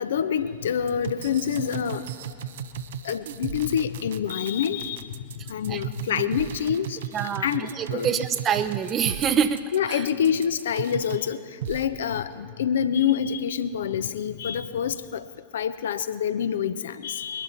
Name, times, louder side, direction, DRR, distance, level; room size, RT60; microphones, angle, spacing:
voice 1, 0.0-2.1 3.0-5.1 5.5-7.0 7.4-8.1 9.7-11.4 11.7-15.2 15.5-17.4, left 8 dB, 65° left, 12 dB, 0.6 m, -26 dB
sound 1, 0.9-11.3 11.6-11.8, right 10 dB, 60° right, 0.7 m, -35 dB
voice 2, 7.1-10.1, right 7 dB, 30° right, 11 dB, 0.7 m, -26 dB
22.0 x 11.5 x 4.3 m, 2.1 s
figure-of-eight pair, 90°, 0 cm